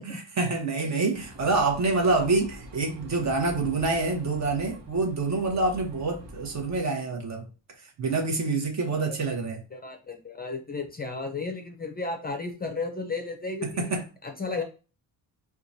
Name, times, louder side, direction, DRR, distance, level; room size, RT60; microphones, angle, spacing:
voice 1, 0.1-7.5 8.0-9.6 13.8-14.0, right 3 dB, 40° right, 1.0 m, -26 dB
sound 1, 1.1-6.8, equal, 90° right, 1.0 m, -45 dB
voice 2, 9.7-14.6, left 3 dB, 25° left, 0.5 m, -34 dB
4.4 x 2.3 x 2.7 m
cardioid pair, 120°, 41 cm